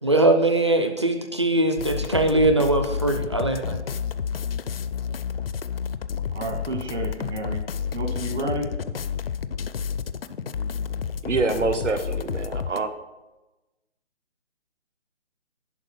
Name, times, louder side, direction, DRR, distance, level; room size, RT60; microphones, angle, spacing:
voice 1, 0.0-3.8, right 2 dB, 25° right, 6 dB, 0.5 m, -21 dB
sound 1, 1.8-12.8, left 7 dB, 55° left, 0.5 m, -30 dB
voice 2, 6.3-7.6 7.9-8.7, right 2 dB, 70° right, 3 dB, 2.1 m, -30 dB
voice 3, 11.2-12.9, right 3 dB, 90° right, 8 dB, 1.2 m, -25 dB
11.0 x 4.9 x 5.4 m, 1.0 s
hypercardioid pair, 160°, 35 cm